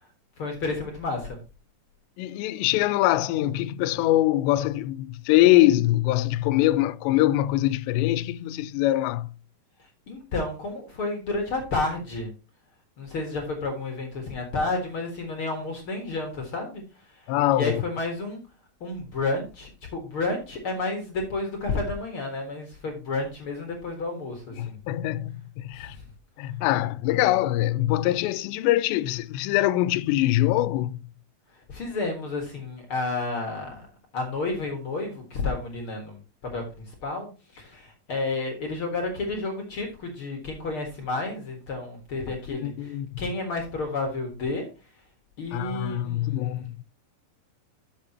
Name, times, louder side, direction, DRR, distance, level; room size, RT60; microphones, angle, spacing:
voice 1, 0.4-1.4 10.1-12.3 13.0-16.8 17.1-17.2 17.5-18.4 18.8-24.8 25.7-26.0 31.7-33.9 34.1-36.2 36.5-44.7 45.4-46.8, left 3 dB, 60° left, 1.4 m, -31 dB
voice 2, 2.2-9.3 17.3-17.8 24.6-26.0 26.4-31.0 42.5-43.2 45.5-46.8, left 15 dB, 85° left, 2.7 m, -23 dB
11.5 x 6.7 x 2.9 m
omnidirectional pair, 4.9 m